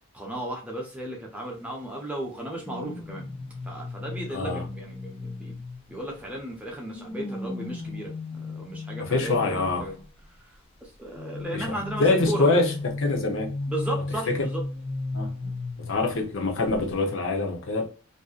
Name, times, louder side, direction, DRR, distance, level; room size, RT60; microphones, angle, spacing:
voice 1, 0.1-3.3 3.6-5.6 5.9-10.0 10.4-10.5 10.8-12.7 13.7-14.6 15.4-15.5, right 1 dB, 5° right, 0.7 m, -35 dB
sound 1, 2.6-6.3 6.9-10.1 11.2-16.4 16.7-16.9, left 2 dB, 25° left, 0.3 m, -35 dB
voice 2, 4.3-4.6 9.0-9.8 11.5-13.5 14.3-14.4 15.1-15.3 15.9-17.9, left 3 dB, 60° left, 0.7 m, -25 dB
2.6 x 2.1 x 2.4 m
head